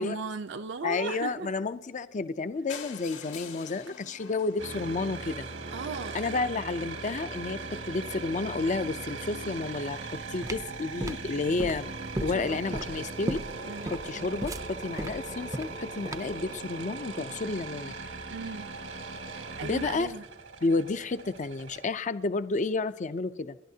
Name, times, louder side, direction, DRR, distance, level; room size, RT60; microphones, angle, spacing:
voice 1, 0.0-1.5 5.7-6.2 12.2-12.6 13.6-13.9 18.3-18.7 19.3-20.2, right 4 dB, 70° right, 0.6 m, -37 dB
voice 2, 0.8-5.5 6.1-7.6 7.9-10.0 10.3-11.9 12.2-13.4 13.8-17.9 19.6-20.1 20.6-23.6, left 3 dB, 40° left, 0.5 m, -31 dB
sound 1, 2.7-6.6 7.2-7.3 7.6-7.7 7.9-8.0 8.2-8.3, left 6 dB, 80° left, 2.5 m, -46 dB
sound 2, 4.6-21.9, right 3 dB, 90° right, 2.0 m, -39 dB
sound 3, 10.2-16.5, right 1 dB, 20° right, 0.5 m, -36 dB
29.5 x 11.5 x 2.8 m
head